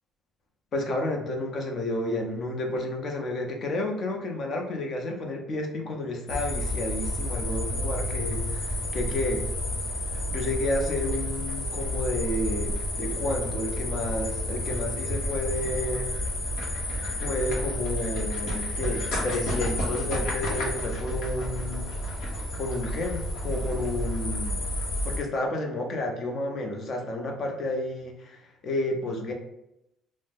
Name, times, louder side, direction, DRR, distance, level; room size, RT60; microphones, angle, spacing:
voice 1, 0.7-9.5 10.3-16.1 17.2-21.9 22.6-24.6 25.0-29.3, left 1 dB, 40° left, 2 dB, 0.6 m, -31 dB
sound 1, 6.3-25.2, left 1 dB, 85° left, 0.8 m, -30 dB
2.6 x 2.0 x 3.5 m, 0.85 s
cardioid pair, 145°, 0 cm